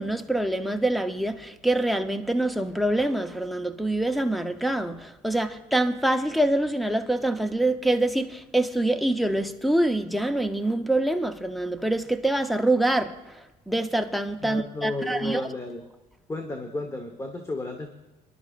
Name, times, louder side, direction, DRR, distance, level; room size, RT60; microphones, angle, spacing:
voice 1, 0.0-15.4, right 1 dB, ahead, 0.7 m, -25 dB
voice 2, 14.4-15.8 16.3-17.9, left 2 dB, 15° left, 1.1 m, -33 dB
25.0 x 11.5 x 2.5 m
cardioid pair, 110°, 17 cm